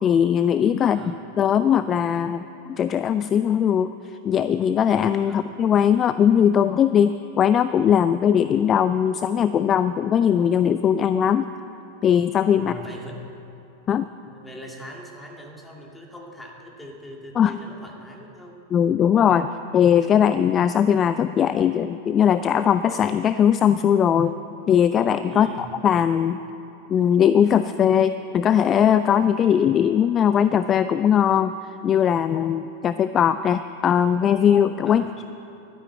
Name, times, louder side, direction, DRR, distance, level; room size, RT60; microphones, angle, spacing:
voice 1, 0.0-11.5 12.0-12.7 13.9-14.1 17.4-17.5 18.7-24.4 24.7-26.4 26.9-31.6 31.8-35.1, left 8 dB, 25° left, 13 dB, 0.3 m, -20 dB
voice 2, 0.8-1.2 5.2-5.5 12.6-13.2 14.3-18.6 25.3-25.8 34.9-35.1, equal, 5° left, 0 dB, 2.1 m, -41 dB
12.5 x 9.8 x 7.9 m, 2.9 s
figure-of-eight pair, 90°, 0 cm